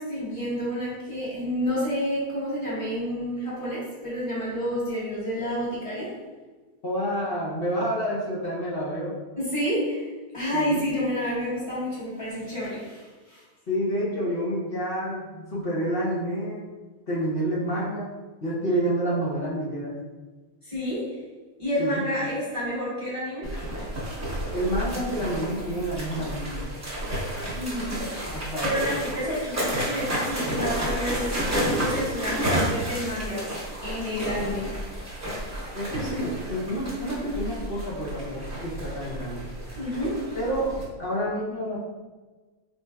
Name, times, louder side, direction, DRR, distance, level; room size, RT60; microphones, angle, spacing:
voice 1, 0.0-6.1 9.4-10.1 10.3-13.4 20.6-21.0 21.6-23.5 27.5-27.9 28.3-33.5 33.8-34.7 39.8-40.2, equal, 20° left, -9 dB, 1.4 m, -29 dB
voice 2, 6.8-9.2 10.5-10.8 13.7-16.6 17.1-18.1 18.4-19.9 21.8-22.0 24.5-26.6 28.3-28.9 35.7-39.5 40.3-40.7 41.0-41.8, right 1 dB, 50° left, -6 dB, 0.8 m, -28 dB
sound 1, 23.4-40.8, right 1 dB, 15° right, 0.7 m, -31 dB
4.2 x 3.2 x 2.3 m, 1.3 s
omnidirectional pair, 1.6 m